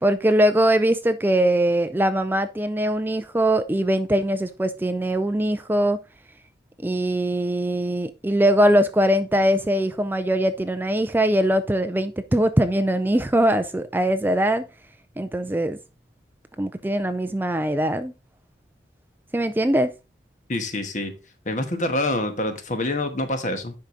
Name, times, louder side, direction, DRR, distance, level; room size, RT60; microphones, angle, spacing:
voice 1, 0.0-6.0 6.8-14.6 15.2-15.8 16.6-18.1 19.3-19.9, right 1 dB, 10° right, 0.4 m, -21 dB
voice 2, 20.5-21.1 21.5-23.7, left 1 dB, 45° left, 1.3 m, -26 dB
10.0 x 4.8 x 3.8 m
head